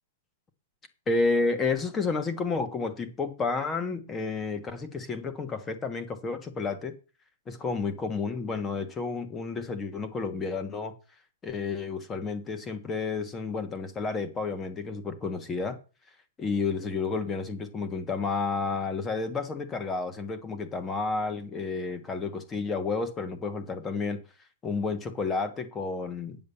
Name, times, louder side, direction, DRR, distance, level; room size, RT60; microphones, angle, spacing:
voice 1, 1.1-6.9 7.5-10.9 11.4-15.8 16.4-24.2 24.6-26.4, left 4 dB, 10° left, 9 dB, 1.4 m, -31 dB
9.6 x 7.4 x 7.1 m, 0.33 s
hypercardioid pair, 170°, 0 cm